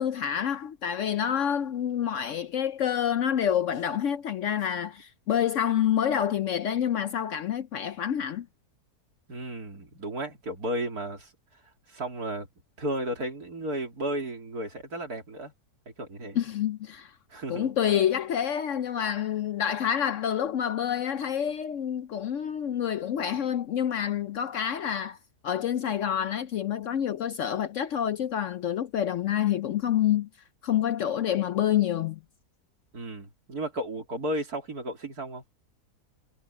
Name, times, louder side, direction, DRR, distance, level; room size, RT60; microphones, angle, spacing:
voice 1, 0.0-8.5 16.4-17.1 17.5-25.2 25.4-30.3 30.6-32.2, left 9 dB, 65° left, 0.8 m, -27 dB
voice 2, 9.3-11.3 11.9-12.5 12.8-15.5 15.9-16.4 17.3-17.7 32.9-35.4, right 1 dB, 70° right, 3.9 m, -34 dB
omnidirectional pair, 1.7 m